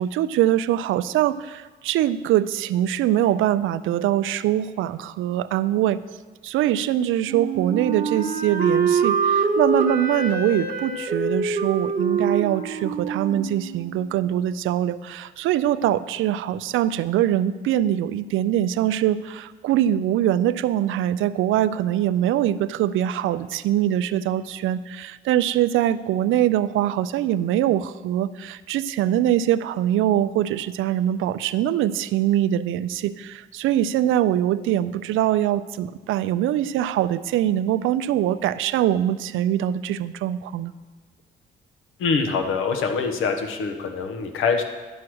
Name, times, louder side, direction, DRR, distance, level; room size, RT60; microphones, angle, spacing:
voice 1, 0.0-6.0 6.4-40.7, right 12 dB, 85° right, 14 dB, 0.4 m, -23 dB
Wind instrument woodwind instrument, 7.3-14.1, right 5 dB, 40° right, 1.0 m, -25 dB
voice 2, 42.0-44.6, left 5 dB, 85° left, 5 dB, 1.0 m, -24 dB
11.0 x 4.8 x 6.1 m, 1.3 s
cardioid pair, 115°, 20 cm